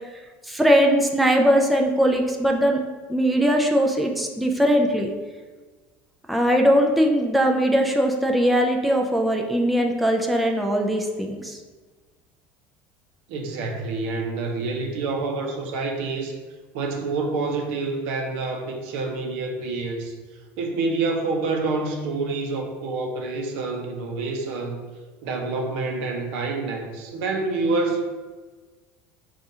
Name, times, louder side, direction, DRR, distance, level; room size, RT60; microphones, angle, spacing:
voice 1, 0.5-2.8 3.1-5.1 6.3-11.6, equal, ahead, 1 dB, 0.3 m, -20 dB
voice 2, 13.3-16.4 16.7-20.2 20.6-24.8 25.2-28.0, right 3 dB, 80° right, 3 dB, 0.6 m, -27 dB
5.3 x 2.4 x 2.7 m, 1.3 s
cardioid pair, 140°, 6 cm